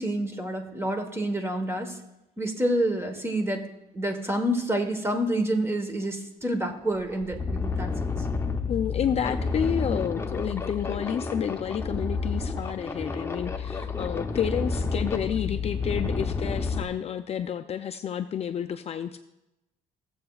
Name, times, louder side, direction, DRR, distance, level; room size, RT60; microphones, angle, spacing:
voice 1, 0.0-2.0 2.4-3.7 3.9-8.1, right 1 dB, 15° right, 6 dB, 1.3 m, -28 dB
sound 1, 6.4-6.5 7.0-16.8, left 4 dB, 15° left, 0.7 m, -30 dB
voice 2, 8.7-19.2, left 8 dB, 40° left, 7 dB, 0.4 m, -30 dB
16.0 x 7.7 x 2.4 m, 0.92 s
cardioid pair, 110°, 17 cm